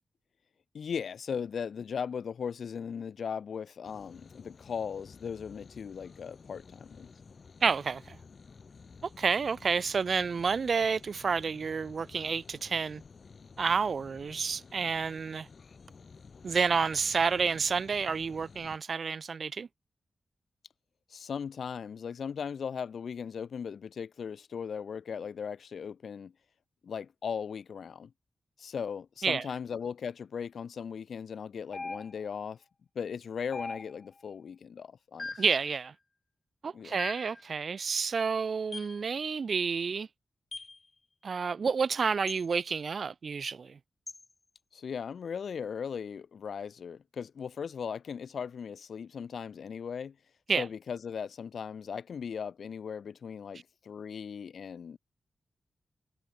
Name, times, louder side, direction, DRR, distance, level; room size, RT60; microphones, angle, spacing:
voice 1, 0.7-7.1 21.1-26.3 26.8-28.1 28.6-32.6 32.9-35.4 36.7-36.9 44.7-50.2 50.6-55.0, left 7 dB, 75° left, 1.1 m, -38 dB
sound 1, 3.8-18.8, left 5 dB, 50° left, 1.8 m, -53 dB
voice 2, 7.6-8.2 9.2-13.0 13.6-15.5 16.4-19.7 29.2-29.4 35.4-35.9 36.6-40.1 41.2-43.8 50.5-50.7, right 5 dB, 55° right, 0.4 m, -29 dB
sound 2, 31.7-32.4 33.5-34.2 35.2-35.6 37.0-37.4 38.7-39.0 40.5-40.8 42.3-42.5 44.1-44.2, left 3 dB, 35° left, 0.9 m, -41 dB
wide cardioid pair, 100°, 0 cm